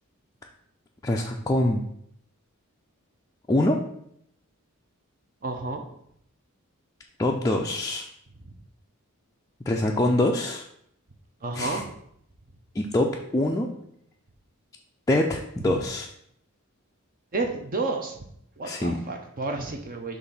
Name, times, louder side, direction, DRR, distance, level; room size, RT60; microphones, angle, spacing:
voice 1, 1.0-1.8 3.5-3.8 7.2-8.1 9.7-10.6 11.5-11.8 12.7-13.7 15.1-16.1 18.6-19.0, left 1 dB, 15° left, -1 dB, 0.4 m, -24 dB
voice 2, 5.4-5.8 8.4-8.5 11.4-11.9 15.6-15.8 17.3-18.2 18.6-20.2, right 3 dB, 40° right, 3 dB, 0.6 m, -31 dB
6.8 x 2.6 x 5.6 m, 0.71 s
head